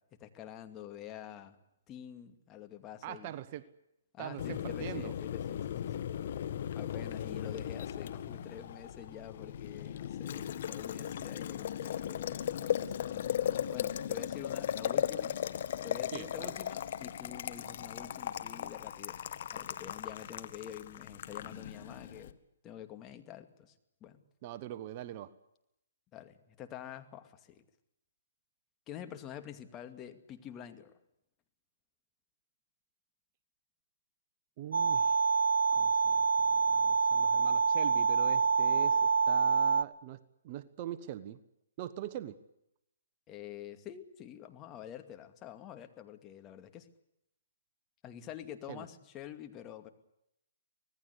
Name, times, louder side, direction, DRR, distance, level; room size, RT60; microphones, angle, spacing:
voice 1, 0.2-1.6 1.9-3.3 4.1-6.1 6.7-12.5 12.8-13.3 13.7-15.4 15.8-19.2 19.5-22.4 22.6-23.7 24.0-24.2 26.1-27.6 28.9-30.9 43.3-46.9 48.0-49.9, left 10 dB, 25° left, 7 dB, 2.4 m, -47 dB
voice 2, 3.0-3.6 4.2-5.1 16.1-16.5 24.4-25.3 34.6-35.2 35.7-41.4 41.8-42.4 48.7-48.9, right 12 dB, 40° right, 12 dB, 1.3 m, -42 dB
Boiling, 4.4-22.3, left 10 dB, 55° left, 1.7 m, -37 dB
sound 1, 34.7-39.8, right 5 dB, 75° right, 0.8 m, -27 dB
25.5 x 19.5 x 8.3 m, 0.82 s
hypercardioid pair, 135°, 0 cm